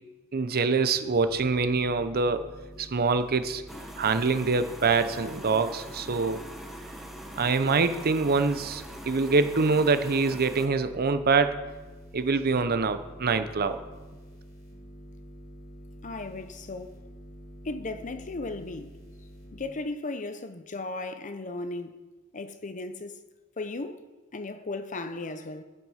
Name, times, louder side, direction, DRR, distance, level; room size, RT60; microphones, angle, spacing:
voice 1, 0.3-2.5 2.8-3.6 4.0-6.4 7.4-11.6 12.1-13.8, right 4 dB, 45° right, 0.7 m, -25 dB
sound 1, 1.2-19.6, equal, 70° left, 4.3 m, -47 dB
sound 2, 3.7-10.7, equal, ahead, 1.0 m, -43 dB
voice 2, 16.0-17.0 17.6-19.0 19.5-22.0 22.3-23.2 23.6-24.0 24.3-25.6, left 2 dB, 35° left, 0.7 m, -36 dB
12.5 x 7.6 x 5.6 m
head